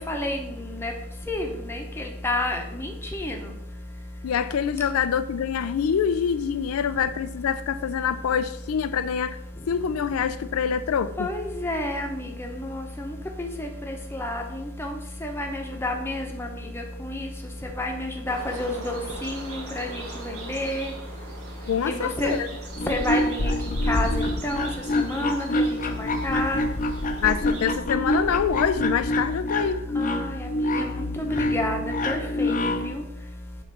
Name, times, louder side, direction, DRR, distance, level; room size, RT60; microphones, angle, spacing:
voice 1, 0.1-0.9 1.3-3.4 11.2-13.1 13.4-17.3 17.8-20.9 21.9-22.3 22.9-24.7 25.0-26.6 30.0-31.0 31.5-31.8 32.1-32.6 32.8-33.0, left 1 dB, 10° left, 2 dB, 0.9 m, -30 dB
voice 2, 4.2-9.4 9.7-11.3 21.6-22.5 27.2-29.8, left 7 dB, 80° left, 12 dB, 0.4 m, -25 dB
sound 1, 18.3-27.8, right 3 dB, 90° right, 1.4 m, -41 dB
sound 2, 22.8-32.9, left 1 dB, 40° left, 0.6 m, -26 dB
7.8 x 3.2 x 5.7 m, 0.84 s
head